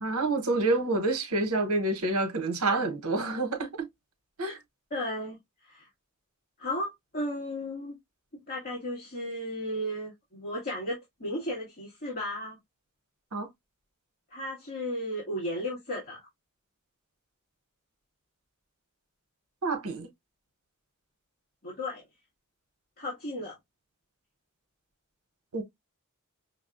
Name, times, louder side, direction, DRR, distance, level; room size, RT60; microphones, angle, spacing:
voice 1, 0.0-3.9 4.4-4.6 13.3-13.5 19.6-20.1 25.5-25.6, right 2 dB, 75° right, 0.9 m, -28 dB
voice 2, 4.9-5.4 5.6-5.9 6.6-8.0 8.5-12.6 14.3-16.2 21.6-22.0 23.0-23.6, left 1 dB, 45° left, 1.8 m, -34 dB
5.9 x 2.3 x 2.4 m
head